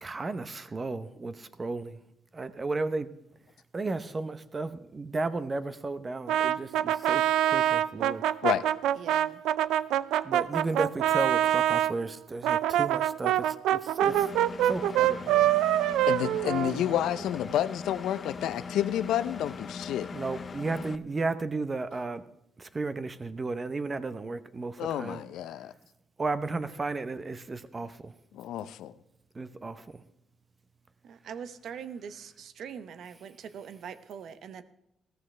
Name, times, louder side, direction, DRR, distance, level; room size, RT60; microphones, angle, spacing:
voice 1, 0.0-2.0 2.3-3.1 3.7-8.2 10.2-14.3 14.6-15.5 20.1-22.2 22.6-25.2 26.2-28.1 29.3-29.8, right 3 dB, 30° right, 12 dB, 0.8 m, -34 dB
Brass instrument, 6.3-11.9 12.4-17.2, right 12 dB, 90° right, 0.4 m, -25 dB
voice 2, 9.0-9.4 31.0-34.6, right 7 dB, 70° right, 12 dB, 0.9 m, -42 dB
Engine, 14.0-21.0, left 5 dB, 40° left, 0.6 m, -40 dB
voice 3, 16.1-20.1 24.8-25.7 28.3-28.9, left 11 dB, 85° left, 14 dB, 0.6 m, -30 dB
15.0 x 14.0 x 3.3 m, 0.81 s
cardioid pair, 90°, 0 cm